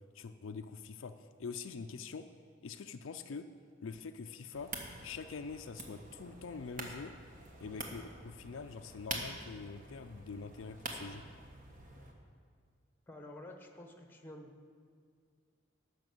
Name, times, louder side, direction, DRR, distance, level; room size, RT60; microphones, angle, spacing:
voice 1, 0.1-2.3 2.6-3.5 3.8-4.7 5.0-7.1 7.6-11.2, left 5 dB, 70° left, 8 dB, 0.4 m, -44 dB
sound 1, 4.5-12.1, right 2 dB, 40° right, 1.4 m, -46 dB
voice 2, 13.1-14.7, left 1 dB, 10° left, 3 dB, 1.0 m, -50 dB
12.5 x 5.8 x 7.7 m, 2.1 s
head